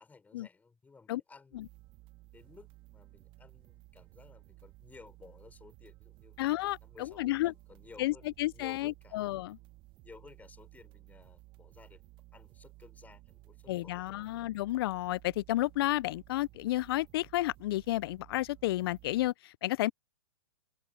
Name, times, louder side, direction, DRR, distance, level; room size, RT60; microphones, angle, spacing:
voice 1, 0.0-1.6 2.3-6.4 6.8-8.3 8.5-9.2 10.0-14.3, left 4 dB, 10° left, 5.5 m, -56 dB
sound 1, 1.5-19.3, right 19 dB, 25° right, 1.1 m, -57 dB
voice 2, 6.4-7.5 8.0-9.6 13.7-19.9, left 16 dB, 40° left, 0.4 m, -32 dB
open air
hypercardioid pair, 135°, 18 cm